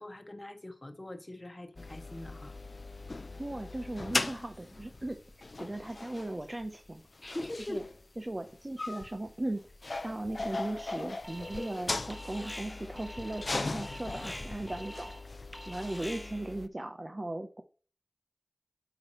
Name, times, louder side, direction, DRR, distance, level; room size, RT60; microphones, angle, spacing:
voice 1, 0.0-2.5 7.2-7.8, left 1 dB, 30° left, 1.2 m, -42 dB
sound 1, 1.8-16.7, left 3 dB, 60° left, 0.5 m, -39 dB
voice 2, 3.4-7.1 7.6-7.8 8.2-9.6 10.0-15.2 15.7-17.6, right 1 dB, 35° right, 0.7 m, -38 dB
Alarm, 11.2-11.8 12.1-16.5, equal, 5° left, 1.0 m, -46 dB
8.6 x 4.9 x 3.0 m
wide cardioid pair, 50°, 0 cm